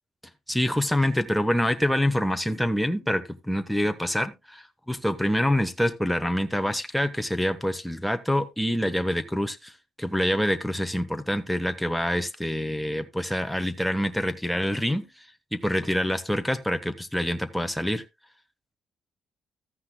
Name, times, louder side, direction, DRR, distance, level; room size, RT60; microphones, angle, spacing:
voice 1, 0.5-9.7 10.0-15.1 15.5-18.0, equal, ahead, 1.0 m, -26 dB
14.0 x 9.5 x 2.2 m
cardioid pair, 90°, 0 cm